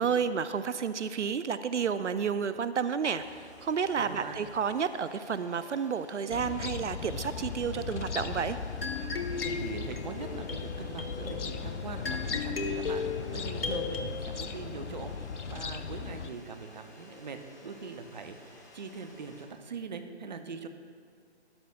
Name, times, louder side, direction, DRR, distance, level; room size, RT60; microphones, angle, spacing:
voice 1, 0.0-8.6, right 6 dB, 85° right, 12 dB, 0.5 m, -31 dB
sound 1, 3.2-19.5, left 2 dB, 15° left, 0.7 m, -54 dB
voice 2, 4.0-4.4 9.4-20.7, right 5 dB, 40° right, 7 dB, 0.6 m, -42 dB
sound 2, 6.3-16.3, left 5 dB, 85° left, 0.6 m, -38 dB
sound 3, 8.8-14.1, left 4 dB, 55° left, 1.0 m, -36 dB
13.0 x 10.5 x 2.3 m, 2.2 s
figure-of-eight pair, 145°, 34 cm